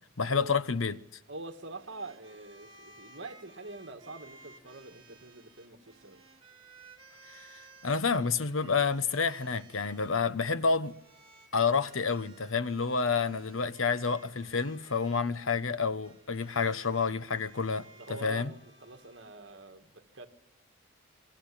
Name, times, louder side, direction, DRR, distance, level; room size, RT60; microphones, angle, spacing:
voice 1, 0.2-1.0 7.3-7.5 7.8-11.0 11.5-18.5, left 5 dB, 75° left, 1.1 m, -29 dB
voice 2, 1.3-6.2 8.6-8.8 17.9-20.3, right 3 dB, 60° right, 2.4 m, -45 dB
sound 1, 1.7-10.2 10.8-15.2 16.0-19.6, right 3 dB, 25° right, 3.7 m, -57 dB
28.0 x 22.5 x 8.8 m
head